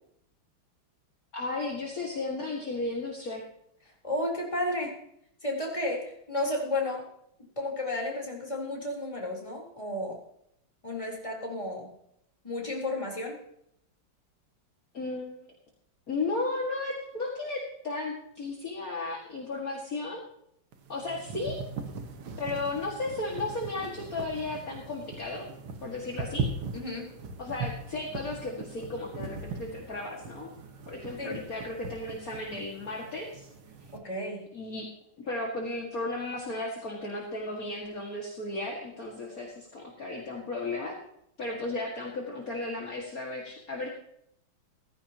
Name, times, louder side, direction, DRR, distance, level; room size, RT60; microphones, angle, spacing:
voice 1, 1.3-3.4 14.9-15.5 16.1-20.2 20.9-21.6 22.4-25.5 25.8-26.5 27.4-30.5 30.9-33.5 34.5-34.9 35.3-41.0 41.4-43.9, left 2 dB, 45° left, -2 dB, 2.4 m, -34 dB
voice 2, 4.0-5.0 5.4-7.1 7.6-10.2 10.8-11.9 12.4-13.4 26.7-27.1 31.2-31.4 33.9-34.4, left 1 dB, 15° left, -2 dB, 3.9 m, -32 dB
sound 1, 20.7-34.0, right 4 dB, 85° right, 2.2 m, -40 dB
16.0 x 15.0 x 2.9 m, 0.74 s
omnidirectional pair, 2.2 m